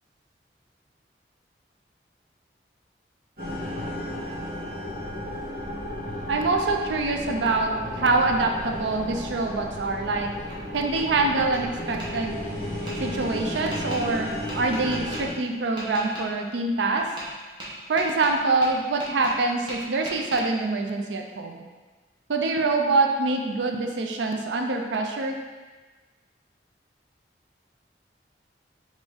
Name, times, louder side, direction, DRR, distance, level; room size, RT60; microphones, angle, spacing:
sound 1, 3.4-15.3, left 1 dB, 50° right, 1.2 m, -34 dB
voice 1, 6.3-10.3 10.7-12.4 13.0-17.1 17.9-21.6 22.3-25.4, right 3 dB, 85° right, 3 dB, 0.4 m, -25 dB
Tap, 10.4-11.0 11.5-12.1 12.9-13.0 13.7-14.0 14.5-15.2 15.8-16.3 17.0-17.3 17.6-19.4 19.7-20.4, right 1 dB, 25° right, 0.9 m, -38 dB
5.1 x 2.6 x 3.5 m, 1.3 s
head